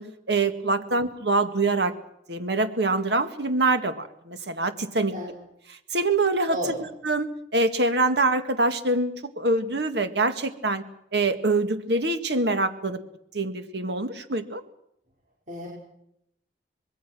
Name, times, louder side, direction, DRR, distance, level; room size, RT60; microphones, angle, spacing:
voice 1, 0.0-1.9 2.3-5.1 5.7-6.8 7.0-10.8 11.1-13.0 13.3-14.6, right 2 dB, 70° right, 9 dB, 1.9 m, -25 dB
voice 2, 6.5-6.8 15.5-15.7, equal, 45° right, -4 dB, 5.6 m, -32 dB
26.0 x 21.0 x 6.2 m, 0.78 s
head